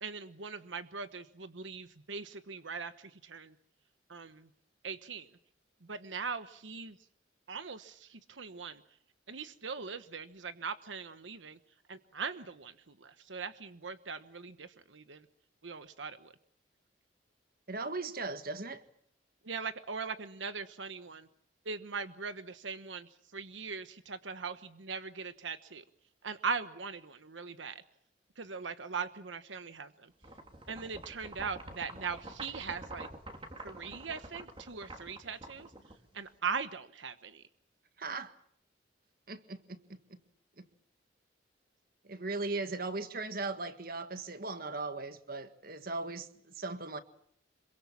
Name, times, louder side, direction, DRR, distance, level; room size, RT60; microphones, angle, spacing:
voice 1, 0.0-3.5 4.1-4.5 4.8-5.3 5.9-7.0 7.5-8.8 9.3-11.6 11.9-15.2 15.6-16.3 19.4-21.3 21.6-25.8 26.2-27.8 28.4-30.1 30.7-33.1 33.6-35.7 36.1-37.4, right 5 dB, 80° right, 1.1 m, -40 dB
voice 2, 17.7-18.8 38.0-38.3 39.3-40.2 40.6-40.7 42.0-47.0, right 3 dB, 50° right, 1.7 m, -38 dB
sound 1, 30.2-36.3, right 1 dB, 30° right, 3.1 m, -47 dB
27.0 x 23.0 x 7.3 m
head